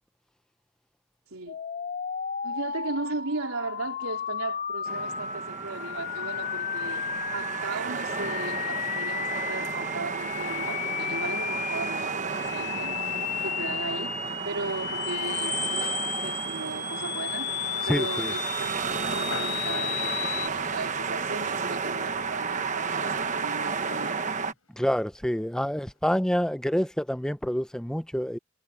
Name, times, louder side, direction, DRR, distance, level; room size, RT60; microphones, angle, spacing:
voice 1, 1.3-1.6 2.4-13.0 13.4-14.1 14.5-17.5 17.9-24.3, right 3 dB, 85° right, 4.0 m, -36 dB
sound 1, 1.5-20.5, left 7 dB, 45° left, 2.8 m, -33 dB
sound 2, 4.9-24.5, right 5 dB, 35° right, 1.1 m, -32 dB
sound 3, 12.2-26.0, left 4 dB, 80° left, 7.4 m, -51 dB
voice 2, 17.8-18.3 24.7-28.4, equal, 5° left, 0.7 m, -27 dB
head